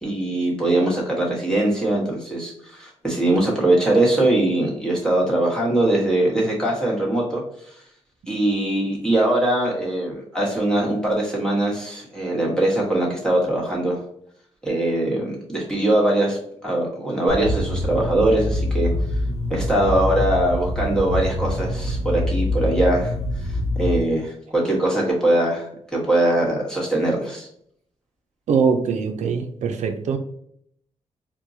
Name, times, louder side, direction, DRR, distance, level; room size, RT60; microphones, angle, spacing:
voice 1, 0.0-7.4 8.3-14.0 14.6-18.9 19.5-23.1 23.4-25.6 25.9-27.5, right 1 dB, 5° left, -4 dB, 1.2 m, -21 dB
sound 1, 17.3-24.0, left 1 dB, 55° left, 0.9 m, -25 dB
voice 2, 28.5-30.2, right 6 dB, 70° right, 6 dB, 0.5 m, -22 dB
4.4 x 2.2 x 2.7 m, 0.69 s
cardioid pair, 105°, 12 cm